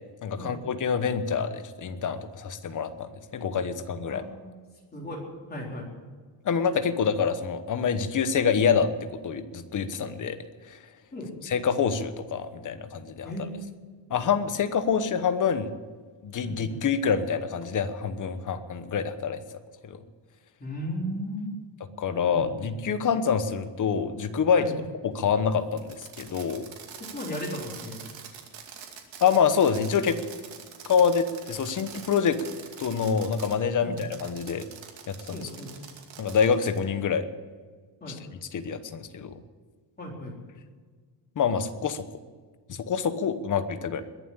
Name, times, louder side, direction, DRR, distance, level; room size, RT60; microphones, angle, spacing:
voice 1, 0.2-4.2 6.4-10.4 10.7-10.8 11.4-13.3 14.1-15.7 16.2-19.4 19.8-20.0 22.0-24.7 25.0-26.7 29.2-30.2 30.9-32.4 32.8-34.6 35.1-35.5 36.2-37.3 38.1-38.2 38.5-39.4 41.4-42.0 42.7-44.0, left 6 dB, 45° left, 10 dB, 1.1 m, -26 dB
voice 2, 4.0-4.6 4.9-5.2 5.5-5.9 11.1-11.3 13.2-13.7 16.4-16.8 20.6-21.6 22.3-22.7 24.6-24.8 26.9-28.0 33.8-34.0 35.3-35.8 38.0-38.2 40.0-40.4, equal, 20° left, -2 dB, 3.9 m, -36 dB
Fireworks, 25.7-33.6 34.0-36.8, right 7 dB, 80° right, 2.5 m, -44 dB
21.5 x 7.5 x 8.8 m, 1.5 s
cardioid pair, 170°, 44 cm